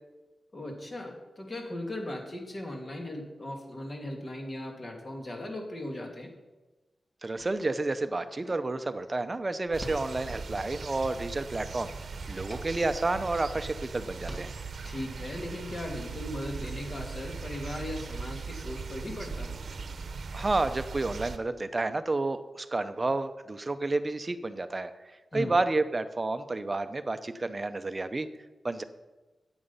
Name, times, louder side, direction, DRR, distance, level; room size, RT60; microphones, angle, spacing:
voice 1, 0.5-6.3 14.8-19.5 25.3-25.5, left 1 dB, 35° left, 1 dB, 2.6 m, -38 dB
voice 2, 7.2-11.9 12.3-14.5 20.3-24.9 25.3-28.3 28.6-28.8, right 2 dB, 30° right, 11 dB, 0.7 m, -30 dB
sound 1, 7.3-10.6 11.0-13.3 13.6-13.7 14.0-15.1, equal, 15° left, 1.9 m, -49 dB
sound 2, 9.7-21.4, right 5 dB, 60° right, 0.9 m, -39 dB
13.5 x 9.0 x 5.6 m, 1.1 s
wide cardioid pair, 115°, 0 cm